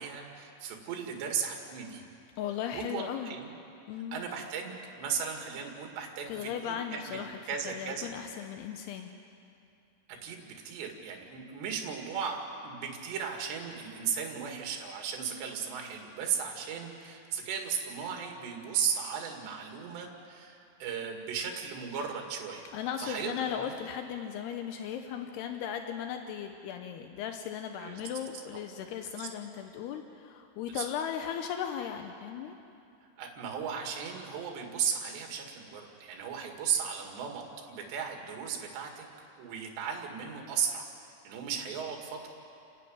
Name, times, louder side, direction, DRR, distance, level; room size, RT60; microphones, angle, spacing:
voice 1, 0.0-2.0 2.7-3.6 4.1-8.1 10.1-22.6 23.0-23.8 27.8-28.0 29.2-29.3 30.7-30.9 33.2-39.0 39.4-40.9 41.2-42.3, right 7 dB, 65° right, 2 dB, 4.0 m, -36 dB
voice 2, 2.4-3.3 3.9-4.2 6.3-9.1 22.7-32.6, left 8 dB, 85° left, 5 dB, 2.3 m, -37 dB
30.0 x 11.0 x 9.6 m, 2.6 s
omnidirectional pair, 5.9 m